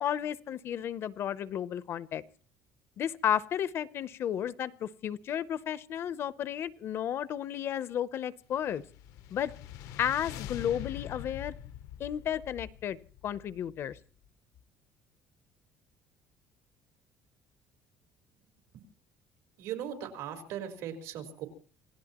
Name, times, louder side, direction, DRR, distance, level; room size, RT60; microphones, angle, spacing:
voice 1, 0.0-2.2 3.0-8.8 9.3-9.5 10.0-11.5 12.0-13.0 13.2-14.0, left 10 dB, 45° left, 0.7 m, -33 dB
sound 1, 8.5-14.0, left 11 dB, 75° left, 0.8 m, -44 dB
voice 2, 19.6-21.5, right 9 dB, 80° right, 4.3 m, -38 dB
27.5 x 17.0 x 3.0 m
cardioid pair, 155°, 6 cm